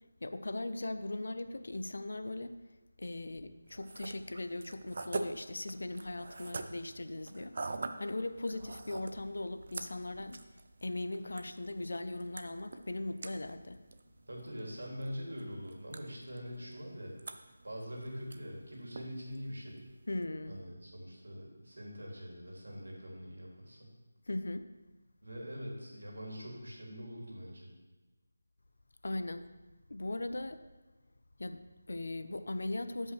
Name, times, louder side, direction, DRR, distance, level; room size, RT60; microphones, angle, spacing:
voice 1, 0.2-2.6 3.0-7.6 8.0-10.4 10.8-13.8 20.1-20.5 24.3-24.7 29.0-29.5 29.9-30.6 31.4-33.1, left 2 dB, 75° left, 10 dB, 0.5 m, -39 dB
sound 1, 3.7-20.3, right 3 dB, 50° right, 0.5 m, -46 dB
voice 2, 14.3-19.8 20.5-23.9 25.2-27.7, equal, 90° right, -2 dB, 2.5 m, -44 dB
12.5 x 5.4 x 3.2 m, 1.2 s
figure-of-eight pair, 170°, 0 cm